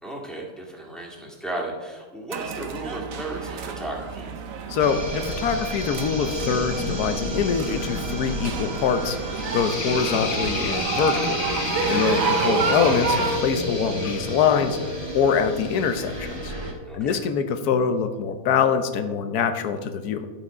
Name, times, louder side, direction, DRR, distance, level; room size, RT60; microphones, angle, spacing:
voice 1, 0.0-4.3 11.8-12.1 16.8-17.2, right 1 dB, ahead, -2 dB, 1.8 m, -35 dB
sound 1, 2.3-13.4, right 5 dB, 65° right, 1.2 m, -29 dB
voice 2, 4.7-11.4 11.9-16.5 16.9-20.3, left 7 dB, 85° left, 9 dB, 1.3 m, -24 dB
sound 2, 4.8-16.7, equal, 20° right, 1.3 m, -30 dB
sound 3, 9.4-16.4, left 9 dB, 70° left, 1.1 m, -35 dB
11.0 x 7.3 x 4.9 m, 1.4 s
omnidirectional pair, 1.6 m